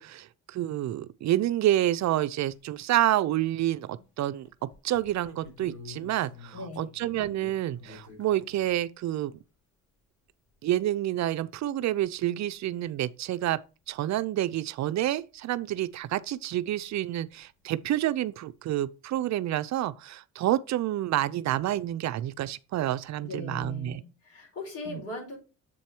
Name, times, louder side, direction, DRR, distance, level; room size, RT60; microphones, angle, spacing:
voice 1, 0.0-4.5 4.8-9.3 10.6-13.6 13.9-24.0 24.9-25.0, right 13 dB, 65° right, 0.5 m, -28 dB
sound 1, 2.5-2.6 3.0-4.1 4.4-8.8 11.4-11.5 11.7-11.8 12.8-12.9 13.5-13.6 17.2-17.3 17.4-17.9, left 5 dB, 75° left, 4.0 m, -50 dB
voice 2, 6.5-6.9 23.2-25.4, left 2 dB, 50° left, 4.8 m, -39 dB
7.6 x 4.6 x 4.4 m
cardioid pair, 90°, 30 cm